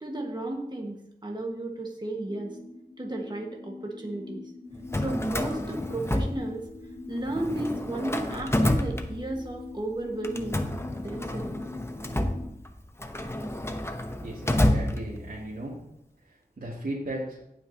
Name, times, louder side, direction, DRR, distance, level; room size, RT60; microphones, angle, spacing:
voice 1, 0.0-2.6 3.0-4.5 4.9-6.6 7.1-10.6 11.0-11.5, right 1 dB, 25° right, 0 dB, 1.5 m, -33 dB
sound 1, 2.3-12.5, left 3 dB, 50° left, 2.2 m, -44 dB
Drawer open or close, 4.7-6.9 7.2-9.6 10.2-15.5, left 1 dB, 15° left, 0.9 m, -29 dB
voice 2, 14.0-15.8 16.3-17.4, right 1 dB, 65° right, -7 dB, 2.4 m, -36 dB
17.5 x 5.9 x 2.9 m, 0.82 s
wide cardioid pair, 60°, 17 cm